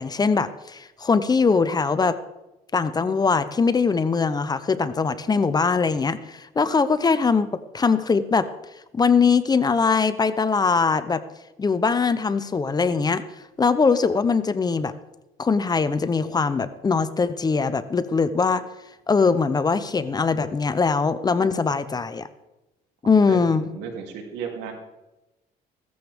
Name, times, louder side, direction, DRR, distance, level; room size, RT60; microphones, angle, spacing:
voice 1, 0.0-2.2 2.7-8.5 8.9-11.2 11.6-13.2 13.6-14.9 15.4-18.6 19.1-22.3 23.0-23.6, left 5 dB, 25° left, 13 dB, 0.7 m, -21 dB
voice 2, 23.3-24.7, right 7 dB, 90° right, 1 dB, 2.8 m, -34 dB
16.5 x 14.0 x 3.5 m, 1.0 s
cardioid pair, 110°, 17 cm